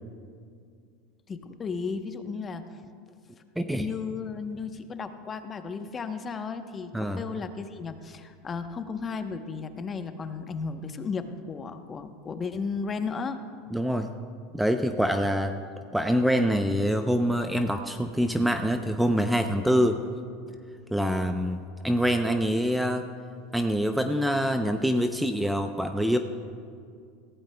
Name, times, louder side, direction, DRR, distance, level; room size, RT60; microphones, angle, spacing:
voice 1, 1.3-2.6 3.8-13.4, left 5 dB, 25° left, 8 dB, 0.9 m, -34 dB
voice 2, 3.6-3.9 6.9-7.2 13.7-14.1 14.5-15.6 15.9-20.0 20.9-21.6 21.8-23.1 23.5-26.2, equal, 5° right, 7 dB, 0.6 m, -25 dB
18.0 x 15.5 x 2.2 m, 2.2 s
supercardioid pair, 105°, 0 cm